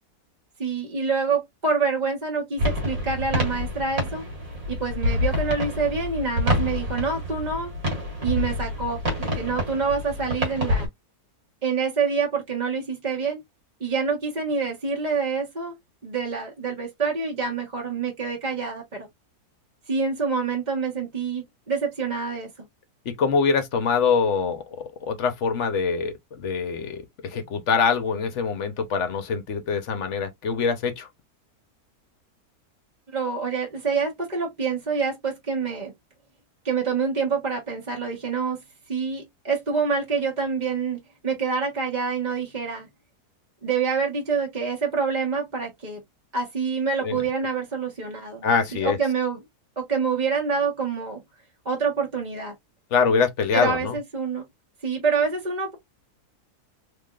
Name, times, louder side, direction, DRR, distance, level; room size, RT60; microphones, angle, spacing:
voice 1, 0.6-4.2 4.7-7.7 8.2-10.9 11.6-13.4 13.8-15.8 16.0-19.1 19.9-22.7 33.1-35.9 36.6-42.9 43.6-46.0 46.3-49.4 49.8-51.2 51.6-52.5 53.5-54.4 54.8-55.7, right 5 dB, 30° right, 1.1 m, -26 dB
sound 1, 2.6-10.9, left 1 dB, 60° right, 2.0 m, -27 dB
voice 2, 23.1-31.1 47.0-47.2 48.4-49.0 52.9-54.0, left 5 dB, 55° left, 1.0 m, -24 dB
3.6 x 3.3 x 2.4 m
omnidirectional pair, 1.7 m